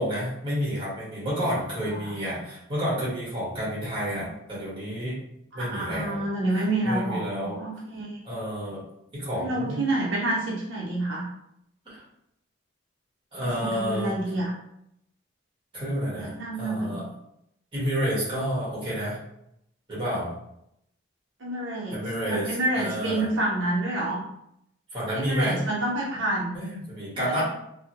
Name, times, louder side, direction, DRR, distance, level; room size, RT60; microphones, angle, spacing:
voice 1, 0.0-5.2 5.5-6.2 6.8-7.6 8.2-8.8 9.1-9.8 11.8-12.0 13.3-14.1 15.7-16.3 16.6-17.0 17.7-19.2 19.9-20.3 21.9-23.3 24.9-25.6 26.5-27.4, equal, 25° right, -7 dB, 1.5 m, -30 dB
voice 2, 5.5-8.2 9.4-11.3 13.4-14.5 16.1-17.0 21.4-22.0 22.3-24.2 25.1-26.6 27.1-27.4, right 1 dB, 80° right, -4 dB, 0.7 m, -28 dB
3.5 x 2.2 x 2.9 m, 0.78 s
head